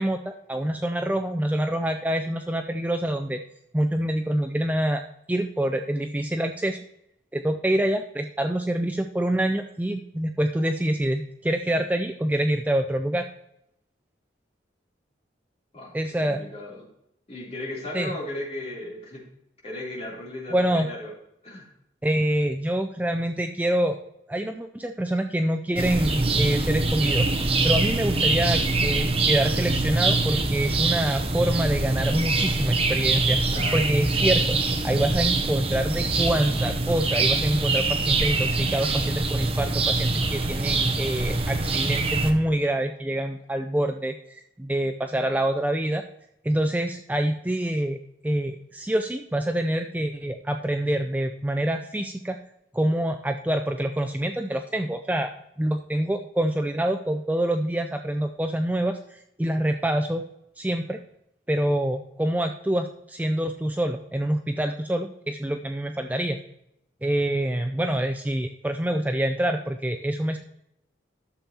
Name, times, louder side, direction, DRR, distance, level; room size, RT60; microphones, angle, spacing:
voice 1, 0.0-3.4 3.7-5.0 5.3-6.8 7.3-13.3 15.9-16.4 17.9-18.1 20.5-20.9 22.0-24.0 24.3-33.4 33.7-34.6 34.8-46.0 46.4-52.4 52.7-55.3 55.6-60.2 60.6-61.0 61.5-66.4 67.0-70.4, right 1 dB, 10° right, 5 dB, 0.4 m, -26 dB
voice 2, 16.2-16.9 17.3-19.3 19.6-21.1 21.4-21.7 33.5-33.9, left 1 dB, 35° left, -5 dB, 3.3 m, -36 dB
sound 1, 25.8-42.3, right 3 dB, 30° right, 0.8 m, -24 dB
12.5 x 7.0 x 2.9 m, 0.80 s
head